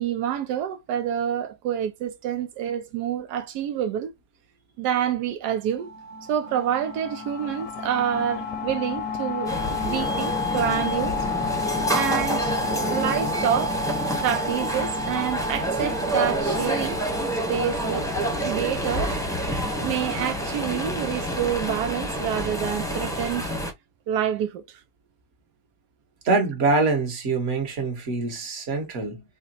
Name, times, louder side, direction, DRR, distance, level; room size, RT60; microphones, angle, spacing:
voice 1, 0.0-4.1 4.8-5.9 6.3-11.2 11.9-13.8 14.2-17.0 17.5-18.1 18.4-19.2 19.8-23.5 24.1-24.8, right 9 dB, 85° right, 1.2 m, -27 dB
sound 1, 5.8-19.3, left 3 dB, 65° left, 1.0 m, -31 dB
sound 2, 9.5-23.7, equal, 5° left, 0.7 m, -28 dB
voice 2, 26.2-29.2, right 3 dB, 50° right, 1.5 m, -25 dB
4.9 x 2.2 x 2.5 m
omnidirectional pair, 1.7 m